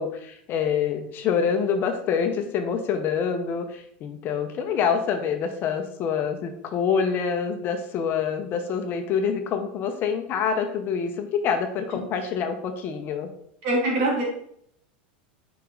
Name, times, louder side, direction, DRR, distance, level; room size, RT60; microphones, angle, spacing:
voice 1, 0.0-13.3, left 6 dB, 40° left, 6 dB, 0.8 m, -26 dB
voice 2, 13.6-14.2, right 1 dB, 65° right, -2 dB, 2.5 m, -23 dB
5.6 x 5.1 x 3.8 m, 0.69 s
supercardioid pair, 125°, 5 cm